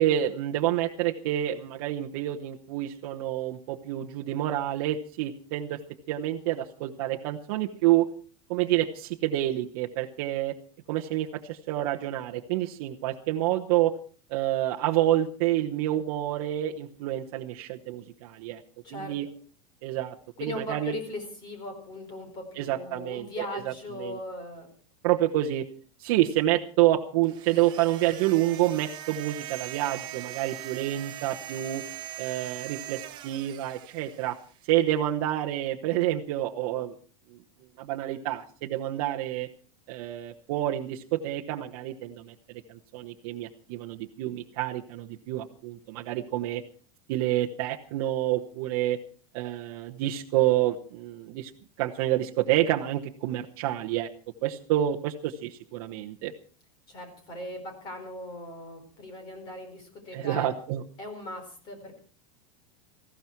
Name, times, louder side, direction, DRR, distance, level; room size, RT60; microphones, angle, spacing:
voice 1, 0.0-5.8 6.1-8.1 8.5-10.6 10.9-13.9 14.3-18.6 18.9-19.3 19.8-20.9 22.6-23.7 24.0-24.2 25.0-25.7 26.0-31.9 32.2-34.4 34.7-36.9 37.3-37.4 37.8-39.5 39.9-46.6 47.1-49.0 49.3-51.5 51.8-54.1 54.4-56.3 60.1-60.8, right 13 dB, 45° right, 0 dB, 1.0 m, -28 dB
voice 2, 18.8-19.1 20.4-24.7 56.9-60.5 61.0-62.0, left 1 dB, 25° left, 6 dB, 4.5 m, -39 dB
sound 1, 27.2-34.6, right 14 dB, 25° right, 1.2 m, -41 dB
19.0 x 15.0 x 4.6 m, 0.41 s
supercardioid pair, 175°, 18 cm